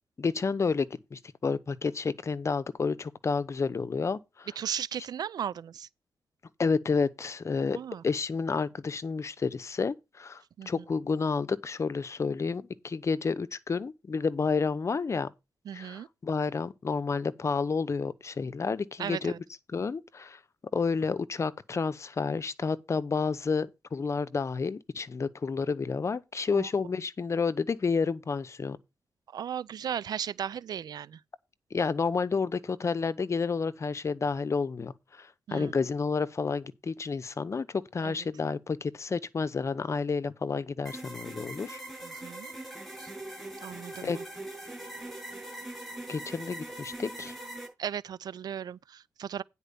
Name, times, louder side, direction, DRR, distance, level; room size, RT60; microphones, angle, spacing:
voice 1, 0.2-4.5 6.6-7.8 8.0-15.3 15.7-19.3 19.7-20.4 20.7-28.8 31.7-41.8 44.0-44.2 46.1-47.3, left 5 dB, 45° left, 0.8 m, -30 dB
voice 2, 4.6-5.9 7.7-8.0 10.6-10.8 15.7-16.1 19.0-19.4 26.5-26.7 29.3-31.2 35.5-35.7 38.0-38.2 42.0-42.5 43.0-43.1 43.6-44.2 47.8-49.4, right 9 dB, 85° right, 0.4 m, -36 dB
sound 1, 40.9-47.7, right 1 dB, ahead, 6.9 m, -42 dB
10.0 x 4.5 x 6.8 m
cardioid pair, 85°, 7 cm